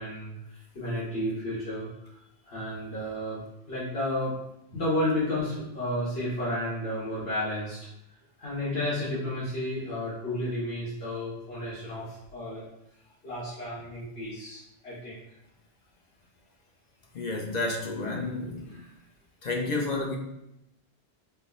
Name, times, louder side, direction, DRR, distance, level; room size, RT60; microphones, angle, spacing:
voice 1, 0.0-2.1 2.4-3.4 3.7-4.3 4.7-7.8 8.4-12.6 13.2-15.2 18.4-18.5 18.8-18.9, left 1 dB, 70° left, -11 dB, 1.6 m, -32 dB
voice 2, 17.1-18.8 19.4-20.2, left 2 dB, 50° left, 0 dB, 0.6 m, -30 dB
5.2 x 2.0 x 3.8 m, 0.84 s
omnidirectional pair, 1.1 m